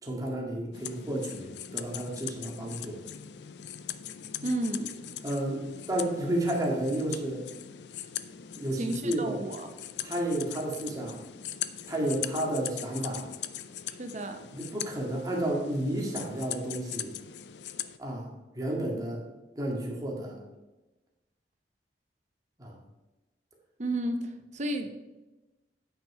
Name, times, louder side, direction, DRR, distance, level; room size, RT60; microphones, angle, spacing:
voice 1, 0.0-3.0 5.2-7.4 8.6-9.4 10.0-11.2 11.9-13.3 14.5-17.1 18.0-18.3 18.6-19.2 19.6-20.4 22.6-22.8, right 1 dB, 20° right, -2 dB, 2.0 m, -31 dB
sound 1, 0.7-18.0, left 11 dB, 70° left, 0.5 m, -41 dB
voice 2, 4.4-4.9 8.7-9.7 14.0-14.5 23.8-24.9, right 1 dB, 40° right, 6 dB, 0.9 m, -32 dB
9.2 x 5.8 x 4.9 m, 1.1 s
head